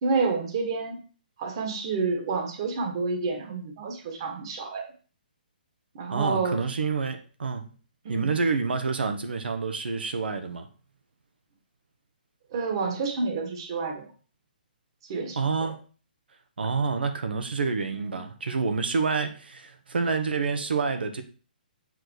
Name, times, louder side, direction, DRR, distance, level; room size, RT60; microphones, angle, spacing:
voice 1, 0.0-1.0 1.4-4.9 5.9-6.6 8.0-8.3 12.5-14.1 15.1-15.7 18.1-18.2, right 4 dB, 30° right, 1.5 m, -29 dB
voice 2, 6.1-7.7 8.1-10.7 15.3-15.8 16.6-21.2, right 4 dB, 90° right, 1.4 m, -28 dB
7.8 x 4.2 x 6.3 m
hypercardioid pair, 175°, 5 cm